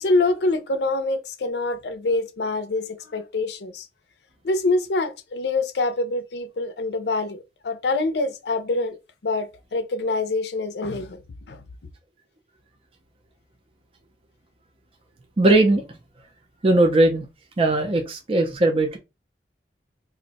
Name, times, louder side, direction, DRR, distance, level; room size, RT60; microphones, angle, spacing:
voice 1, 0.0-2.8 3.1-3.8 4.4-9.0 9.2-11.2 11.5-11.6, left 2 dB, 70° left, 0.5 m, -25 dB
voice 2, 15.4-16.0 16.6-17.3 17.6-19.0, right 2 dB, 30° right, 0.4 m, -19 dB
2.6 x 2.1 x 3.9 m
head